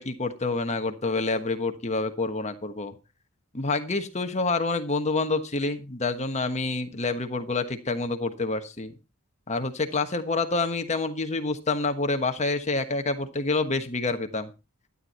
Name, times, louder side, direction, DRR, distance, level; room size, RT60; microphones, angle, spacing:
voice 1, 0.0-2.9 3.5-8.9 9.5-14.5, left 3 dB, 30° left, 7 dB, 1.3 m, -27 dB
12.5 x 9.8 x 4.3 m, 0.28 s
head